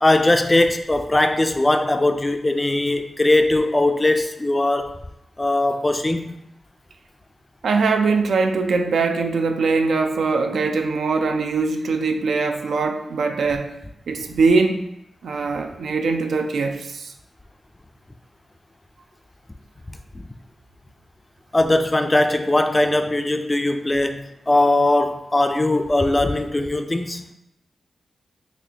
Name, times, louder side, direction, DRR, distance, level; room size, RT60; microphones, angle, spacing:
voice 1, 0.0-4.9 5.4-6.4 21.5-27.3, left 2 dB, 20° left, 7 dB, 0.3 m, -20 dB
voice 2, 7.6-13.7 14.1-14.8 15.2-17.1, right 4 dB, 85° right, 5 dB, 0.3 m, -21 dB
4.1 x 2.9 x 2.7 m, 0.82 s
wide cardioid pair, 90°, 0 cm